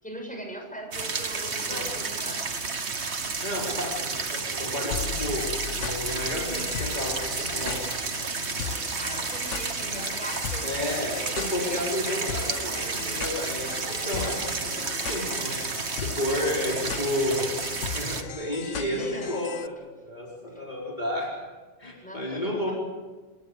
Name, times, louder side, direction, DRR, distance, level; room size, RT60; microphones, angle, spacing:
voice 1, 0.0-2.4 9.0-12.8 18.7-19.3 22.0-22.7, equal, 5° left, 1 dB, 6.7 m, -40 dB
sound 1, 0.9-18.2, right 4 dB, 65° right, 1.9 m, -31 dB
voice 2, 3.4-5.4 5.8-7.8 10.6-14.7 15.0-15.5 16.0-17.5 17.9-21.3 21.8-22.7, left 1 dB, 35° left, -4 dB, 4.8 m, -31 dB
sound 2, 4.9-19.7, left 7 dB, 80° left, 1.4 m, -37 dB
28.0 x 20.0 x 8.2 m, 1.3 s
omnidirectional pair, 1.2 m